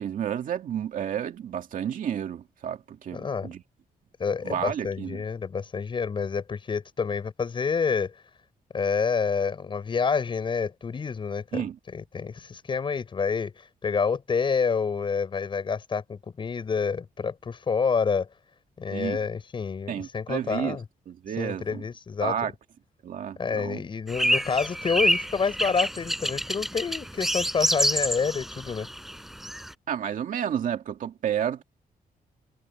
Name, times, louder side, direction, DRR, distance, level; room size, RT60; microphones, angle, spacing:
voice 1, 0.0-3.6 4.4-5.2 11.5-11.8 18.9-19.2 19.9-20.8 21.1-21.8 22.2-22.5 23.0-23.8 29.9-31.6, right 9 dB, 60° right, 2.2 m, -31 dB
voice 2, 3.1-3.5 4.2-8.1 8.7-11.6 11.9-18.3 18.8-20.8 21.4-22.3 23.4-28.9, left 5 dB, 30° left, 6.4 m, -28 dB
sound 1, 24.1-29.7, equal, ahead, 4.6 m, -27 dB
wide cardioid pair, 175°, 16 cm